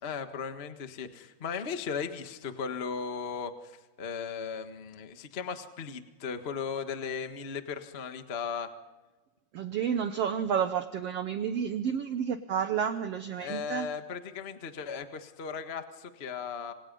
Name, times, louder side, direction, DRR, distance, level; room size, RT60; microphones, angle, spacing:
voice 1, 0.0-8.7 13.4-16.7, left 6 dB, 80° left, 7 dB, 0.5 m, -37 dB
voice 2, 9.5-13.9, right 8 dB, 75° right, 10 dB, 1.4 m, -30 dB
27.5 x 26.5 x 5.4 m, 1.2 s
omnidirectional pair, 3.9 m